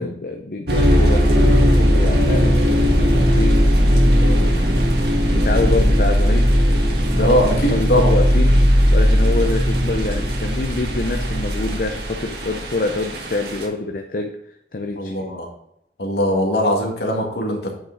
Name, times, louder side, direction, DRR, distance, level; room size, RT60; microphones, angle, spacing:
voice 1, 0.0-3.6 4.0-4.5 5.3-6.5 7.1-8.6 8.9-14.4 14.7-15.3, left 2 dB, 50° left, 4 dB, 0.6 m, -26 dB
sound 1, 0.7-13.6, equal, 65° right, 1.6 m, -17 dB
voice 2, 7.2-8.1 15.0-15.5 16.0-17.7, equal, 70° left, 1 dB, 2.1 m, -21 dB
9.0 x 5.7 x 4.0 m, 0.77 s
head